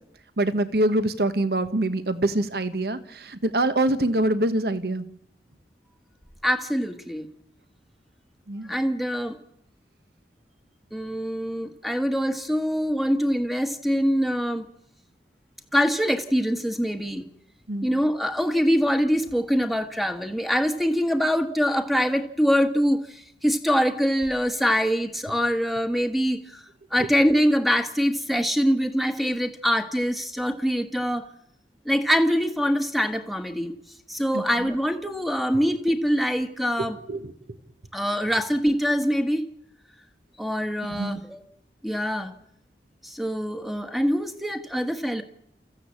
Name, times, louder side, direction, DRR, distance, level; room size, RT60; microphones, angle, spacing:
voice 1, 0.4-5.1 8.5-8.7 17.7-17.9 34.3-34.4 37.1-37.3 40.9-41.1, right 1 dB, 60° right, 12 dB, 1.3 m, -24 dB
voice 2, 6.4-7.3 8.7-9.4 10.9-14.6 15.7-17.2 17.8-26.6 26.9-31.3 31.8-33.7 34.1-37.0 37.9-39.5 40.4-41.4 41.8-42.3 43.0-45.2, equal, ahead, 8 dB, 1.3 m, -24 dB
29.0 x 14.5 x 8.6 m, 0.77 s
head